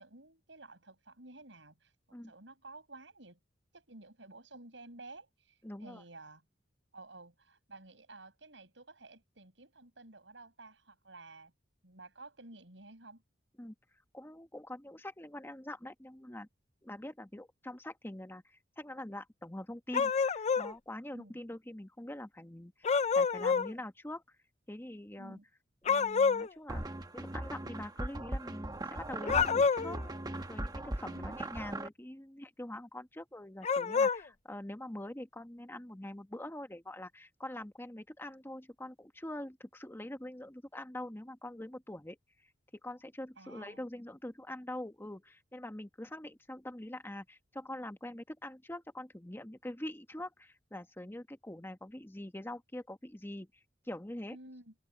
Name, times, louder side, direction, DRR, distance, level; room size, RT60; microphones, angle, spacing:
voice 1, 0.0-1.9 2.3-3.4 3.7-6.4 6.9-11.5 11.8-13.2 21.1-21.4 25.2-25.5 31.0-31.4 43.4-43.8 54.3-54.7, right 2 dB, 80° right, 7.1 m, -53 dB
voice 2, 5.6-6.0 13.6-13.7 14.1-16.5 16.8-24.2 24.7-25.4 25.8-26.8 27.1-30.0 30.5-42.2 42.8-53.5 53.8-54.4, left 1 dB, 15° left, 1.3 m, -44 dB
sound 1, 19.9-20.7 22.8-23.7 25.9-26.5 29.2-30.0 33.6-34.2, left 5 dB, 40° left, 0.5 m, -28 dB
sound 2, 26.7-31.9, right 1 dB, 20° right, 1.2 m, -39 dB
open air
head